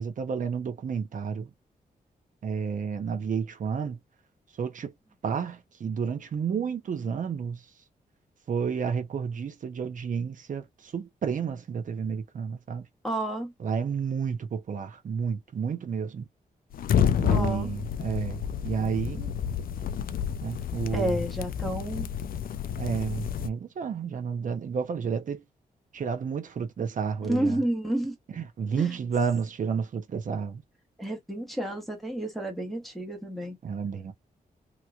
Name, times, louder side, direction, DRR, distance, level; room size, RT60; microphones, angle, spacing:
voice 1, 0.0-1.5 2.4-4.0 4.6-4.9 5.2-7.6 8.5-12.8 13.6-16.3 17.2-19.4 20.4-21.2 22.8-25.4 25.9-27.6 28.4-30.6 33.6-34.1, right 6 dB, 55° right, 0.9 m, -31 dB
voice 2, 13.0-13.5 17.3-17.7 20.9-22.1 27.3-28.2 28.7-28.9 31.0-33.6, right 1 dB, ahead, 1.5 m, -30 dB
sound 1, 16.7-23.5, left 8 dB, 70° left, 0.4 m, -29 dB
3.0 x 3.0 x 2.4 m
wide cardioid pair, 140°, 16 cm